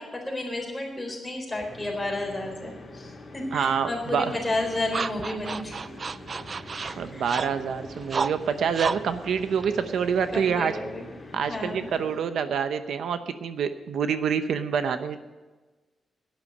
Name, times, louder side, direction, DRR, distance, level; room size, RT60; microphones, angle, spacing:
voice 1, 0.0-5.9 6.7-7.2 7.8-7.9 10.3-11.1 11.5-11.9, left 2 dB, 10° left, -1 dB, 4.0 m, -32 dB
sound 1, 1.5-12.2, left 2 dB, 30° left, 3.2 m, -45 dB
voice 2, 3.5-4.3 7.0-10.7 11.3-15.2, right 7 dB, 75° right, 10 dB, 0.8 m, -27 dB
sound 2, 4.1-10.6, right 5 dB, 35° right, 0.4 m, -34 dB
12.5 x 10.5 x 6.6 m, 1.2 s
wide cardioid pair, 140°, 0 cm